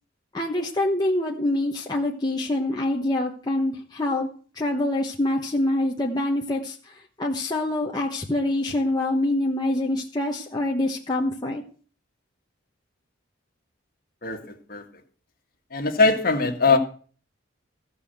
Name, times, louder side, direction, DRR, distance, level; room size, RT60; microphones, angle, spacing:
voice 1, 0.3-4.3 4.5-11.6, left 1 dB, 20° left, 1.0 m, -25 dB
voice 2, 14.2-14.8 15.7-16.8, left 4 dB, 45° left, 1.7 m, -21 dB
15.0 x 5.5 x 7.9 m
head